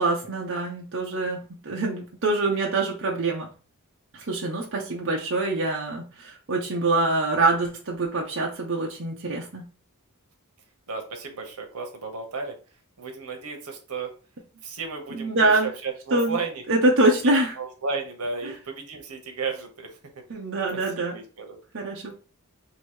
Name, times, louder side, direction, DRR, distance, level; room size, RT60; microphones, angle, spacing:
voice 1, 0.0-3.5 4.1-9.6 15.1-15.7 16.1-16.4 16.7-17.5 18.4-18.5 20.3-21.2 21.7-22.1, right 2 dB, 60° right, -1 dB, 0.7 m, -25 dB
voice 2, 10.9-12.6 13.0-14.2 14.6-16.6 17.2-20.2 20.7-21.6, right 4 dB, 85° right, 3 dB, 1.0 m, -34 dB
3.0 x 2.7 x 4.5 m, 0.36 s
head